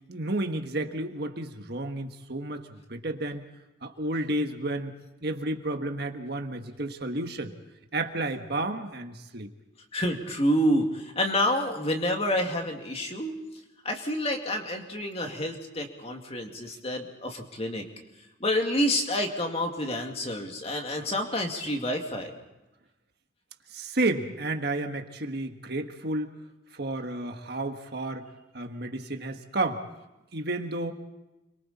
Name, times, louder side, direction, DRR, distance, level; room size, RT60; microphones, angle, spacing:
voice 1, 0.1-3.4 3.8-4.9 5.2-7.5 7.9-9.5 23.7-26.3 26.7-28.3 28.5-29.8 30.3-30.9, right 2 dB, 55° right, 6 dB, 1.5 m, -31 dB
voice 2, 9.9-13.3 13.8-17.8 18.4-22.3, equal, 30° left, 3 dB, 2.4 m, -28 dB
30.0 x 23.5 x 4.3 m, 0.99 s
head